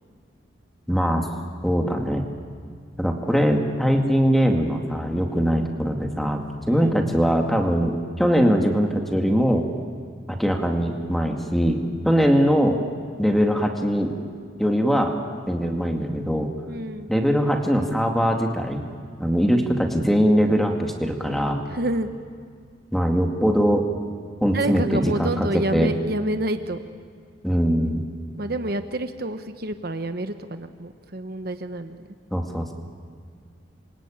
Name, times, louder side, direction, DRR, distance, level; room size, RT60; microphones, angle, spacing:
voice 1, 0.9-1.3 1.6-2.2 3.0-9.6 10.3-12.8 13.2-14.1 14.6-15.1 15.5-16.5 17.1-18.9 19.2-21.6 22.9-23.9 24.4-25.5 25.7-25.9 27.4-28.0 32.3-32.7, equal, ahead, 2 dB, 2.2 m, -21 dB
voice 2, 6.7-7.0 16.7-17.1 21.7-22.1 24.5-26.8 28.4-32.1, right 1 dB, 50° right, 8 dB, 1.0 m, -28 dB
27.5 x 24.5 x 8.9 m, 2.1 s
head